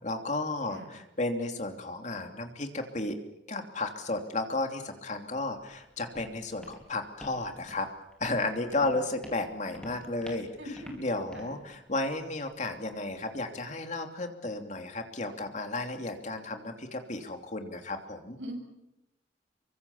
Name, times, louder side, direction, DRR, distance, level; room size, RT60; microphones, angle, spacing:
voice 1, 0.0-3.2 3.5-7.9 8.2-10.5 11.0-18.4, left 2 dB, 40° left, 5 dB, 3.0 m, -33 dB
Walk footsteps, 5.5-13.4, equal, 5° left, 4.7 m, -51 dB
voice 2, 10.6-11.0 11.3-11.6 18.4-18.6, equal, 85° right, 3 dB, 7.4 m, -41 dB
28.5 x 24.0 x 7.2 m, 0.90 s
head